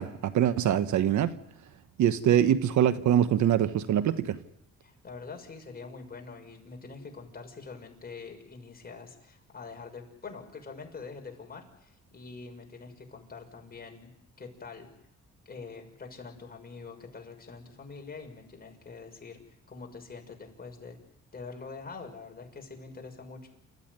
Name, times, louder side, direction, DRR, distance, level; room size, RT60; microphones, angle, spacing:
voice 1, 0.0-1.3 2.0-4.4, right 10 dB, 70° right, 13 dB, 1.2 m, -24 dB
voice 2, 4.8-14.1 14.4-14.9 15.4-19.4 19.7-21.0 21.3-23.5, left 4 dB, 30° left, 2 dB, 6.2 m, -45 dB
28.5 x 14.0 x 9.6 m, 0.80 s
cardioid pair, 90°, 30 cm